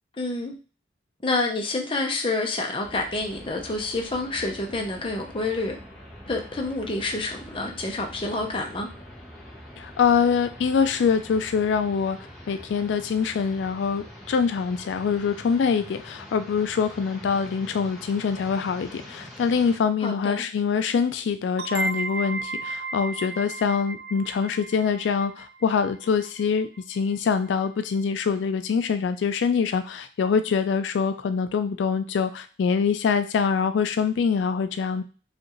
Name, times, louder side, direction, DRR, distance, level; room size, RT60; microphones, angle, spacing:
voice 1, 0.2-0.5 1.2-5.8 6.3-8.9 20.0-20.4, left 2 dB, 30° left, 2 dB, 0.7 m, -28 dB
sound 1, 2.8-19.8, equal, ahead, 0.9 m, -44 dB
voice 2, 9.8-12.2 12.5-35.0, left 6 dB, 90° left, 10 dB, 0.3 m, -24 dB
sound 2, 21.6-27.0, right 3 dB, 60° right, 0.5 m, -34 dB
5.1 x 2.4 x 3.0 m, 0.36 s
head